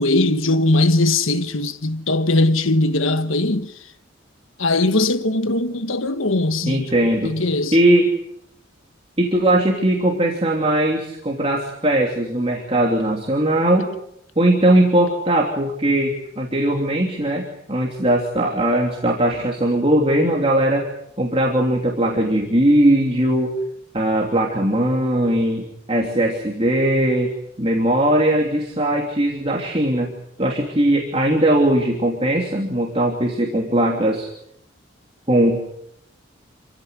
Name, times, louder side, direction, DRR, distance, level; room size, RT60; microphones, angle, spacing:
voice 1, 0.0-3.7 4.6-6.9 7.2-7.8, left 2 dB, 80° left, 1.5 m, -20 dB
voice 2, 6.6-7.3 7.7-8.1 9.2-13.9 14.4-20.9 21.2-23.5 23.9-27.3 27.6-30.1 30.4-34.3 35.3-35.6, right 1 dB, 30° right, 3.1 m, -19 dB
28.0 x 16.5 x 9.8 m
head